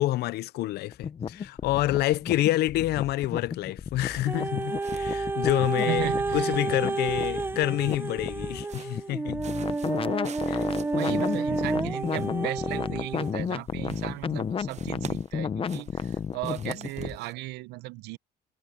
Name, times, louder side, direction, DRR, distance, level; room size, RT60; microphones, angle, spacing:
voice 1, 0.0-9.4 10.5-10.6, left 16 dB, 75° left, 0.6 m, -28 dB
sound 1, 0.9-17.2, left 7 dB, 35° left, 0.7 m, -33 dB
sound 2, 4.0-6.7 7.1-8.2 8.6-9.1 9.4-13.6 13.8-14.4 14.7-17.3, right 8 dB, 40° right, 0.9 m, -48 dB
sound 3, 4.3-13.4 14.0-14.1, right 3 dB, 15° right, 0.5 m, -30 dB
voice 2, 5.9-6.8 10.9-18.2, right 18 dB, 85° right, 0.7 m, -36 dB
cardioid pair, 110°, 17 cm